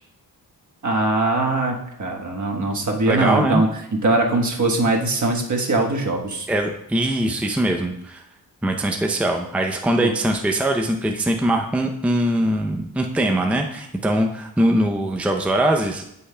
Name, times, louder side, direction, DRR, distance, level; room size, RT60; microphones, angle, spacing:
voice 1, 0.8-6.5 10.0-10.1, right 2 dB, 50° right, 1 dB, 1.3 m, -21 dB
voice 2, 3.1-3.6 6.5-8.2 8.6-16.0, right 1 dB, 5° right, 3 dB, 0.5 m, -22 dB
12.0 x 5.6 x 2.2 m, 0.79 s
cardioid pair, 75°, 37 cm